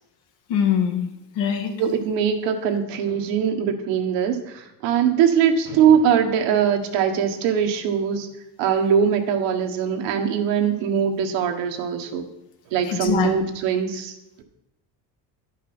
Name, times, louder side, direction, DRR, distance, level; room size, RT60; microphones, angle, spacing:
voice 1, 0.5-1.1 1.3-1.7 12.8-13.3, left 8 dB, 80° left, 4 dB, 1.9 m, -22 dB
voice 2, 1.8-8.3 8.6-12.3 12.7-14.1, right 7 dB, 85° right, 4 dB, 1.5 m, -21 dB
11.0 x 5.9 x 6.0 m, 0.87 s
cardioid pair, 135°, 42 cm